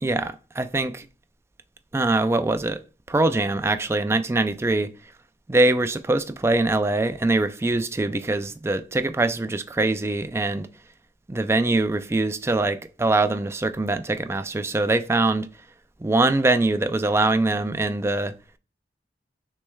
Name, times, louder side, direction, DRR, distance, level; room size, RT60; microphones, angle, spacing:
voice 1, 0.0-1.0 1.9-2.8 3.1-4.9 5.5-10.7 11.3-15.5 16.0-18.3, right 2 dB, 15° right, 0.3 m, -23 dB
6.1 x 3.2 x 2.3 m
head